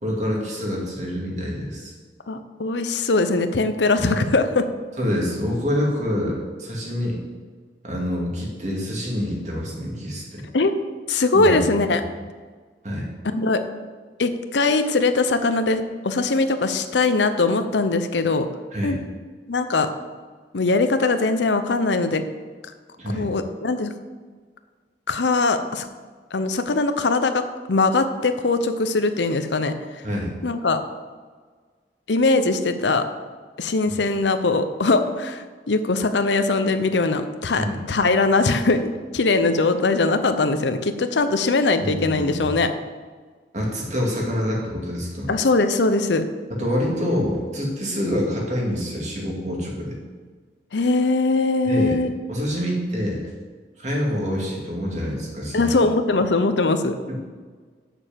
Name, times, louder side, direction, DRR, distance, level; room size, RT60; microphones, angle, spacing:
voice 1, 0.0-1.9 4.1-4.2 5.0-7.2 7.8-10.4 11.3-11.6 11.9-12.0 12.8-13.1 18.7-19.0 23.0-23.3 30.0-30.3 33.9-34.0 37.6-37.8 41.8-42.6 43.5-45.3 46.5-50.0 51.6-52.0 52.3-53.3 53.8-55.8 57.1-57.2, equal, 40° right, -2 dB, 2.5 m, -26 dB
voice 2, 2.3-4.7 10.5-10.7 11.1-12.0 13.2-13.6 14.2-18.5 18.8-19.0 19.5-19.9 20.5-22.2 23.1-23.9 25.1-25.9 26.3-27.4 27.7-29.7 30.4-30.8 32.1-33.0 33.6-42.7 45.3-46.3 50.7-52.1 55.5-57.0, left 3 dB, 85° left, 9 dB, 0.7 m, -21 dB
7.1 x 6.7 x 7.4 m, 1.5 s
head